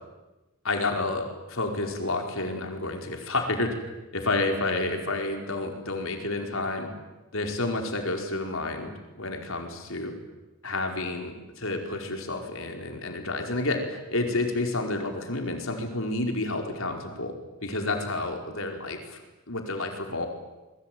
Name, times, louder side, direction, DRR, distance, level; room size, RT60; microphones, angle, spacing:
voice 1, 0.6-3.7 4.1-6.9 7.3-10.1 10.6-17.3 17.6-19.2 19.5-20.3, left 2 dB, 65° left, 3 dB, 5.0 m, -30 dB
27.5 x 22.5 x 9.5 m, 1.1 s
head